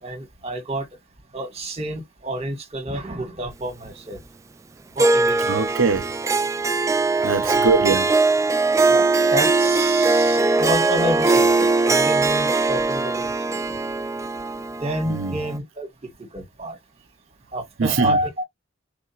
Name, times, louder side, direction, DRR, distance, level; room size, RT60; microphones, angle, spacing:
voice 1, 0.0-0.8 1.3-4.2 4.9-5.4 7.1-7.7 8.9-13.8 14.8-15.9 16.3-16.8 17.5-18.4, right 1 dB, 35° right, 1.7 m, -29 dB
Harp, 5.0-15.6, right 3 dB, 15° right, 0.3 m, -20 dB
voice 2, 5.5-6.1 7.2-8.1 15.1-15.4 17.8-18.2, right 4 dB, 90° right, 0.7 m, -22 dB
4.6 x 2.8 x 2.9 m
head